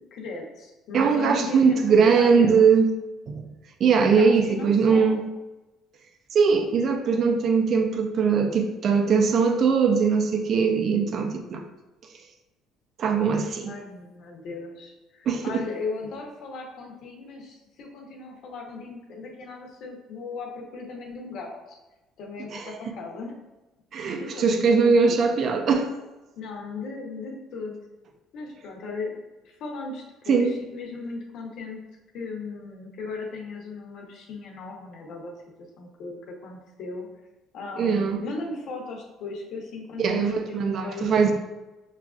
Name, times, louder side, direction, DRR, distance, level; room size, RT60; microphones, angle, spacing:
voice 1, 0.1-2.6 4.1-5.2 13.7-21.8 22.2-23.3 24.2-25.2 26.4-27.8 28.3-29.1 29.4-31.8 32.1-35.3 35.8-37.1 37.5-41.2, left 3 dB, 60° left, 0 dB, 0.9 m, -37 dB
voice 2, 0.9-2.9 3.3-3.4 3.8-5.2 6.3-11.6 13.0-13.7 15.3-15.6 22.5-22.6 23.9-25.9 30.3-30.5 37.8-38.2 40.0-41.3, right 5 dB, 45° right, 5 dB, 0.5 m, -21 dB
5.9 x 2.4 x 2.4 m, 1.1 s
cardioid pair, 135°, 0 cm